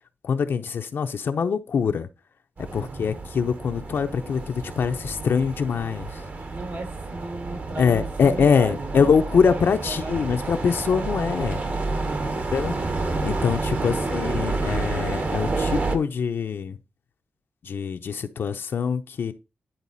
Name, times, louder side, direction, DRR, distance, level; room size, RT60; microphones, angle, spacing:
voice 1, 0.2-2.1 2.7-6.1 7.8-11.6 12.5-12.7 13.2-16.8 17.6-19.3, left 6 dB, 80° left, 0.8 m, -23 dB
sound 1, 2.6-16.0, right 3 dB, 55° right, 1.3 m, -29 dB
voice 2, 2.7-3.1 6.5-10.7 12.0-12.4 13.7-14.1, right 2 dB, 70° right, 2.6 m, -36 dB
10.5 x 4.1 x 4.1 m
wide cardioid pair, 95°, 4 cm